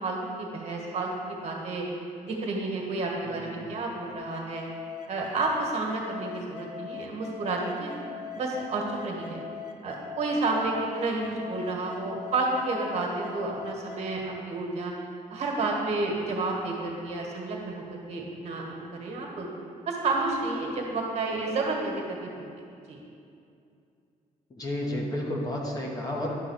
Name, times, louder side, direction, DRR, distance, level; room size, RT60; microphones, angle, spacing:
voice 1, 0.0-1.8 2.2-4.6 5.1-7.9 8.3-9.4 9.8-14.9 15.3-19.5 19.9-22.5 22.9-23.0, right 3 dB, 50° right, -1 dB, 1.5 m, -30 dB
voice 2, 3.2-3.7 24.6-26.4, left 1 dB, 25° left, -1 dB, 1.1 m, -32 dB
sound 1, 4.1-14.2, left 7 dB, 70° left, 1.0 m, -41 dB
11.0 x 3.8 x 7.3 m, 2.5 s
cardioid pair, 170°, 14 cm